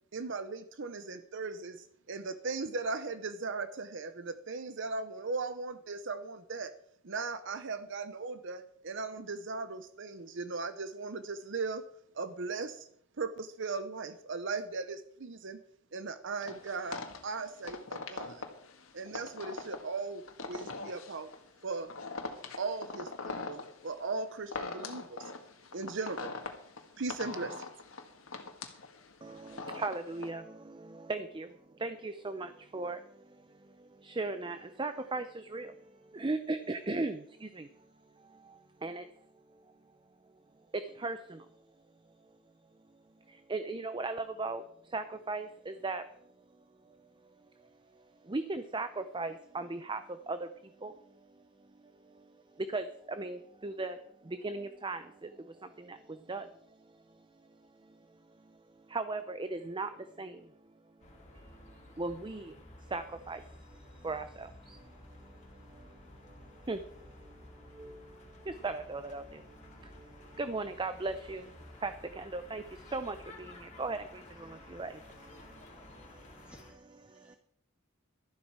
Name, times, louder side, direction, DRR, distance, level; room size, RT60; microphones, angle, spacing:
voice 1, 0.1-6.7 7.0-11.8 12.1-12.9 13.2-15.6 15.9-18.4 18.9-21.3 21.6-21.9 22.6-25.3 25.7-26.3 27.0-27.7, right 4 dB, 60° right, 10 dB, 0.8 m, -38 dB
sound 1, 16.5-30.3, left 3 dB, 80° left, 1.8 m, -42 dB
voice 2, 29.2-37.9 38.1-39.1 39.5-39.7 40.7-41.6 42.9-76.5 77.0-77.4, right 3 dB, 25° right, 10 dB, 0.6 m, -39 dB
sound 2, 61.0-76.7, left 2 dB, 35° left, 2.7 m, -54 dB
voice 3, 76.4-77.4, equal, 5° right, 1 dB, 2.8 m, -60 dB
13.0 x 11.5 x 4.8 m, 0.66 s
head